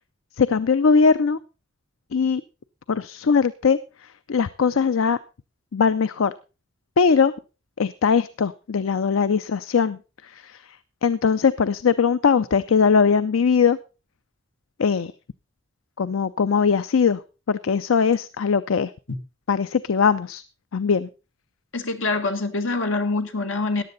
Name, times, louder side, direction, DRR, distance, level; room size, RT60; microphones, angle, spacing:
voice 1, 0.4-1.4 2.1-2.4 2.9-5.2 5.7-6.3 7.0-7.3 7.8-10.8 11.0-13.8 14.8-15.1 16.0-17.2 17.5-18.9 19.5-20.4 20.7-21.1, left 5 dB, 90° left, 15 dB, 0.5 m, -20 dB
voice 2, 21.7-23.8, left 3 dB, 75° left, 6 dB, 1.8 m, -25 dB
14.5 x 10.5 x 4.0 m, 0.31 s
head